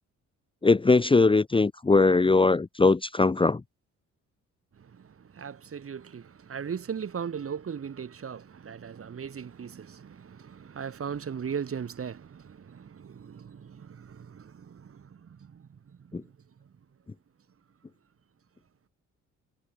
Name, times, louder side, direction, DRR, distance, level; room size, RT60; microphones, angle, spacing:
voice 1, 0.6-3.6 16.1-16.2, left 3 dB, 15° left, 0.9 m, -21 dB
voice 2, 4.8-16.3, right 7 dB, 45° right, 6.2 m, -38 dB
cardioid pair, 90°, 30 cm